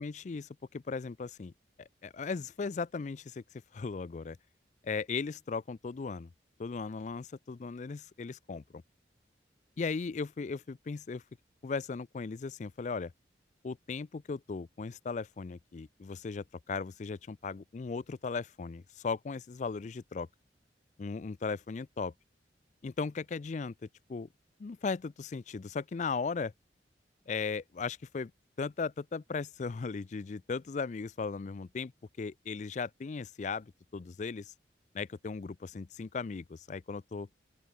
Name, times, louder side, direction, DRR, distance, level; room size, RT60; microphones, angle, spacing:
voice 1, 0.0-1.5 1.8-4.4 4.8-6.3 6.6-8.8 9.8-11.2 11.6-13.1 13.6-20.3 21.0-22.1 22.8-23.7 24.1-24.3 24.6-26.5 27.3-28.3 28.6-31.9 32.2-34.5 34.9-37.3, left 4 dB, 40° left, 0.4 m, -37 dB
open air
head